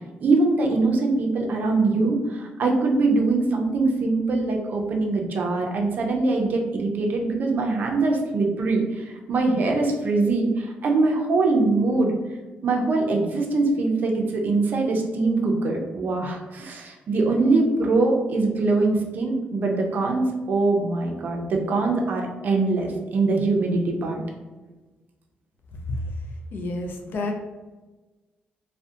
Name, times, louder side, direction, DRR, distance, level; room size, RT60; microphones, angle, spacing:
voice 1, 0.2-12.1 12.6-24.2, right 3 dB, 50° right, 1 dB, 0.4 m, -23 dB
voice 2, 26.5-27.3, left 2 dB, 60° left, 2 dB, 0.4 m, -29 dB
2.6 x 2.1 x 2.4 m, 1.2 s
cardioid pair, 140°, 4 cm